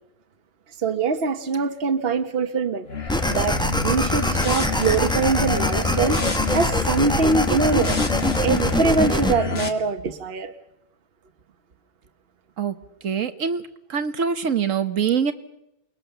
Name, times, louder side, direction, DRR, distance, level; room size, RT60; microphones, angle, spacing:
voice 1, 0.8-6.2 6.5-7.9 8.4-10.5, right 4 dB, 50° right, 1.3 m, -23 dB
sound 1, 2.9-9.7, left 4 dB, 50° left, 2.0 m, -28 dB
sound 2, 3.1-9.3, equal, 5° left, 0.9 m, -24 dB
voice 2, 13.0-13.6 13.9-15.3, right 7 dB, 90° right, 1.7 m, -23 dB
28.5 x 21.5 x 6.8 m
omnidirectional pair, 1.3 m